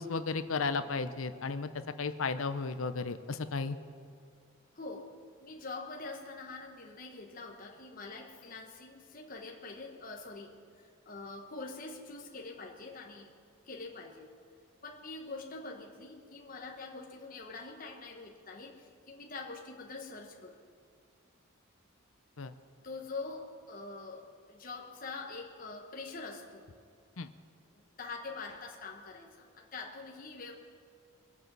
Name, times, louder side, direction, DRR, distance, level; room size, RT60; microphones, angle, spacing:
voice 1, 0.0-1.7 2.0-3.8 22.4-22.5 27.2-27.3, left 4 dB, 70° left, 11 dB, 0.7 m, -34 dB
voice 2, 4.7-13.3 13.6-14.3 14.8-20.6 22.8-26.7 27.7-30.5, left 3 dB, 40° left, 0 dB, 1.2 m, -44 dB
22.5 x 8.4 x 6.1 m, 2.2 s
head